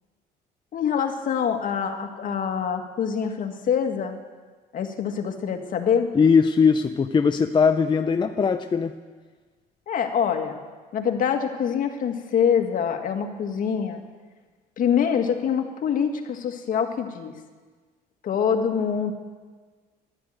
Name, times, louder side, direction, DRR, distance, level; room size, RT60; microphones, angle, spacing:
voice 1, 0.7-4.2 4.7-6.1 9.9-10.6 10.9-14.0 14.8-17.3 18.2-19.1, left 7 dB, 55° left, 5 dB, 1.8 m, -25 dB
voice 2, 6.1-8.9, left 5 dB, 25° left, 7 dB, 0.6 m, -20 dB
13.0 x 11.5 x 9.0 m, 1.4 s
cardioid pair, 110°, 17 cm